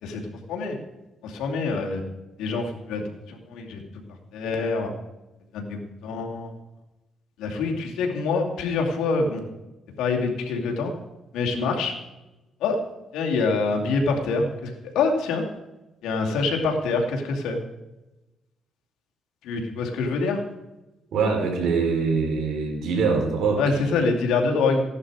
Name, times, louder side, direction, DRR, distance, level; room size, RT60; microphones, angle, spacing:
voice 1, 0.0-0.7 1.2-2.0 2.4-3.8 4.3-4.9 5.5-6.5 7.4-9.4 10.0-10.9 11.3-11.9 12.6-12.8 13.1-15.4 16.0-17.6 19.4-20.4 23.6-24.8, left 4 dB, 85° left, 1 dB, 2.5 m, -25 dB
voice 2, 21.1-23.9, right 4 dB, 70° right, 1 dB, 4.3 m, -24 dB
16.0 x 11.0 x 4.9 m, 1.0 s
cardioid pair, 90°, 0 cm